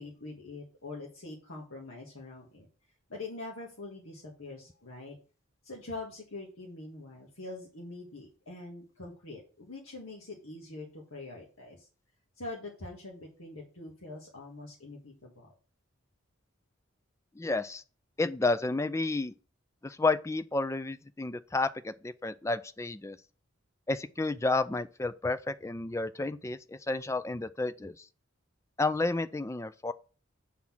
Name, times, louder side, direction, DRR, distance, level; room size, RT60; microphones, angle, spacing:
voice 1, 0.0-2.7 3.1-5.2 5.6-11.9 12.4-15.5, left 2 dB, 85° left, 1.8 m, -44 dB
voice 2, 17.4-17.8 18.2-19.3 19.8-23.2 23.9-28.1 28.8-29.9, left 3 dB, 15° left, 0.3 m, -31 dB
8.3 x 3.9 x 6.0 m
head